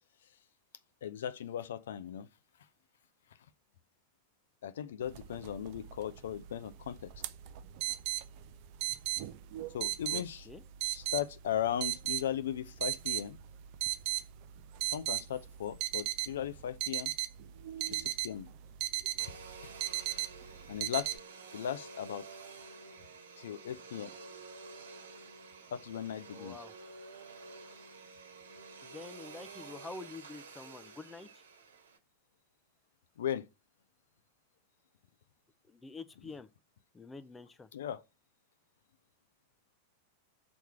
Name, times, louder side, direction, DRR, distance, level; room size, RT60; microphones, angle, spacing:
voice 1, 1.0-2.3 4.6-7.1 9.7-10.5 10.8-13.4 14.9-17.1 17.9-18.5 19.6-19.7 20.1-20.3 20.7-21.2 21.5-22.3 23.4-24.1 25.7-26.6 33.2-33.5 37.7-38.0, left 10 dB, 60° left, 0.6 m, -37 dB
sound 1, 5.1-21.2, right 16 dB, 45° right, 0.5 m, -38 dB
voice 2, 10.1-10.6 26.3-26.7 28.8-31.3 35.7-36.5 36.9-37.7, left 3 dB, 15° left, 0.6 m, -47 dB
Domestic sounds home sounds, 19.2-32.0, right 4 dB, 65° right, 1.3 m, -50 dB
6.3 x 4.6 x 5.7 m
figure-of-eight pair, 90°, 0 cm